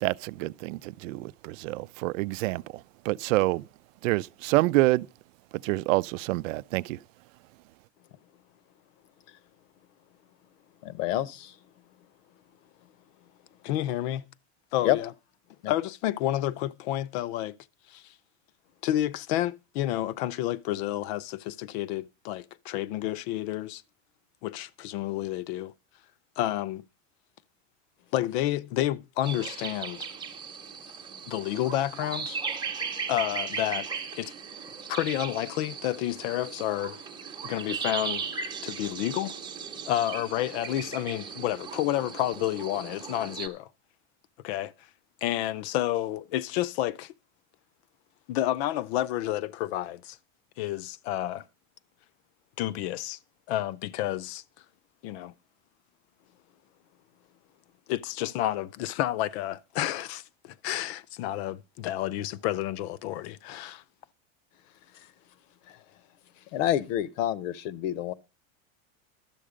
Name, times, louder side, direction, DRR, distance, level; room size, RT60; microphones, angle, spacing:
voice 1, 0.0-2.6 3.0-3.6 4.0-5.1 5.6-7.0, right 19 dB, 80° right, 0.6 m, -27 dB
voice 2, 10.8-11.5 14.8-15.0 15.6-15.7 66.5-68.1, left 12 dB, 75° left, 1.0 m, -28 dB
voice 3, 13.6-14.2 14.7-15.1 15.7-17.6 17.9-18.1 18.8-23.8 24.4-25.7 26.4-26.8 28.1-30.0 31.3-32.4 33.1-34.3 34.9-37.0 37.4-38.3 38.6-39.4 39.9-43.7 44.4-44.7 45.2-47.1 48.3-50.2 50.6-51.4 52.6-53.2 53.5-54.4 55.0-55.3 57.9-63.8, left 13 dB, 55° left, 0.7 m, -30 dB
sound 1, 29.2-43.5, right 6 dB, 10° right, 0.9 m, -37 dB
12.5 x 7.6 x 5.0 m
supercardioid pair, 160°, 39 cm